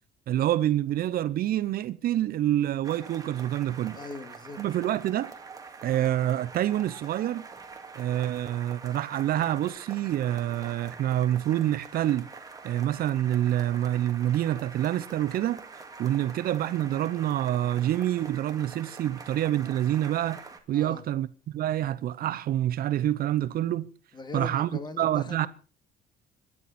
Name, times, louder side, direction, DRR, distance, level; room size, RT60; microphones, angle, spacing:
voice 1, 0.3-4.0 4.6-5.3 5.8-7.4 8.0-12.3 12.6-15.6 16.0-20.4 20.7-23.9 24.3-24.7 25.0-25.5, right 12 dB, 60° right, 0.8 m, -27 dB
sound 1, 2.8-20.6, right 4 dB, 20° right, 2.3 m, -45 dB
voice 2, 3.9-4.6 20.7-21.0 24.1-25.5, left 3 dB, 25° left, 2.2 m, -40 dB
26.0 x 11.0 x 4.3 m
cardioid pair, 110°, 17 cm